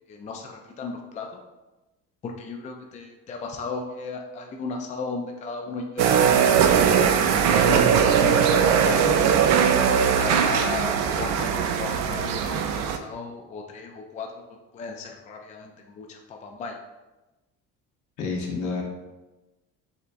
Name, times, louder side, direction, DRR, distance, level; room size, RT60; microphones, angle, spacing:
voice 1, 0.1-1.3 2.2-9.2 10.1-14.4 14.7-16.7, left 4 dB, 25° left, 2 dB, 0.4 m, -35 dB
sound 1, 6.0-13.0, right 7 dB, 65° right, 0.4 m, -20 dB
voice 2, 18.2-18.8, left 4 dB, 70° left, -1 dB, 1.1 m, -29 dB
6.8 x 2.3 x 2.5 m, 1.1 s
cardioid pair, 125°, 30 cm